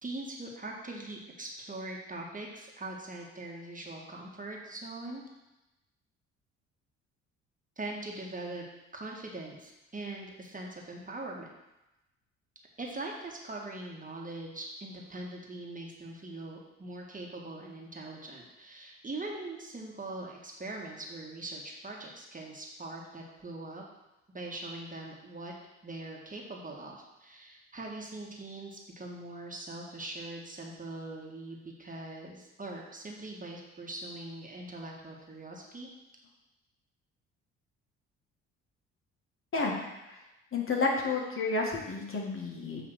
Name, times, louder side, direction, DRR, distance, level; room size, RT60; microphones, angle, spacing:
voice 1, 0.0-5.2 7.8-8.6 8.9-11.5 12.8-23.8 24.3-25.5 25.8-35.9, right 2 dB, 25° right, -1 dB, 1.8 m, -42 dB
voice 2, 40.5-42.8, left 3 dB, 35° left, -1 dB, 2.0 m, -30 dB
8.7 x 3.4 x 6.6 m, 0.96 s
hypercardioid pair, 50°, 35 cm